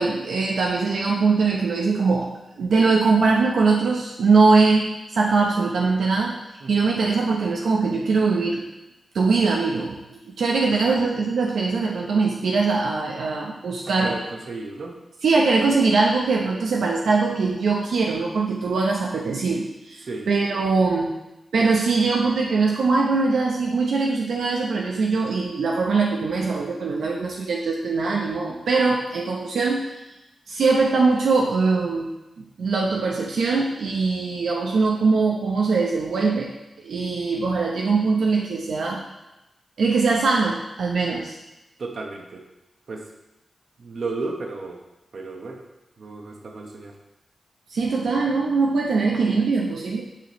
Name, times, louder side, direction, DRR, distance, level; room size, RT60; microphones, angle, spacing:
voice 1, 0.0-2.3 2.6-6.4 6.7-8.6 9.1-14.2 15.2-21.1 21.5-29.8 30.5-32.1 32.4-36.5 36.8-39.0 39.8-41.4 47.7-50.0, right 4 dB, 80° right, -1 dB, 0.7 m, -21 dB
voice 2, 6.6-7.2 10.7-11.0 13.8-15.0 20.0-20.3 41.8-42.4 42.9-43.1 43.8-44.8 45.1-45.6 46.0-47.0, right 3 dB, 60° right, 2 dB, 1.0 m, -34 dB
8.6 x 5.1 x 3.0 m, 0.95 s
wide cardioid pair, 105°, 0 cm